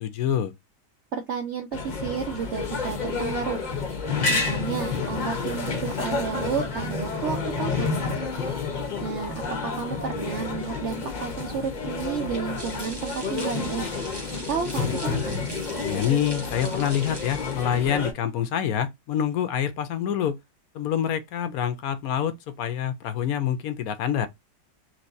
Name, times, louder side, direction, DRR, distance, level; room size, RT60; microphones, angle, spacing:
voice 1, 0.0-0.5 15.8-20.4 20.7-24.3, left 9 dB, 70° left, 0.9 m, -26 dB
voice 2, 1.1-3.6 4.3-8.0 9.0-15.4, right 6 dB, 85° right, 0.6 m, -32 dB
sound 1, 1.7-18.1, left 4 dB, 40° left, 0.6 m, -30 dB
sound 2, 12.6-17.7, right 1 dB, 25° right, 0.5 m, -41 dB
4.3 x 3.1 x 2.6 m
omnidirectional pair, 1.9 m